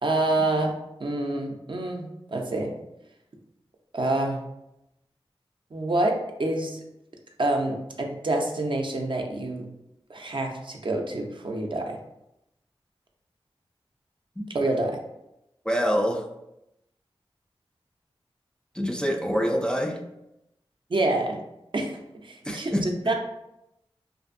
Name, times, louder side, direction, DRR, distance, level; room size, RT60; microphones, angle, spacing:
voice 1, 0.0-0.7 1.0-2.7 3.9-4.4 5.7-6.8 7.4-9.7 10.1-12.0 14.5-15.0 20.9-21.4 21.7-22.0 22.2-23.1, right 2 dB, 55° right, 2 dB, 0.4 m, -27 dB
voice 2, 15.7-16.2 18.7-20.0 22.4-22.9, equal, 10° left, 1 dB, 0.3 m, -25 dB
2.6 x 2.5 x 2.5 m, 0.87 s
wide cardioid pair, 45°, 10 cm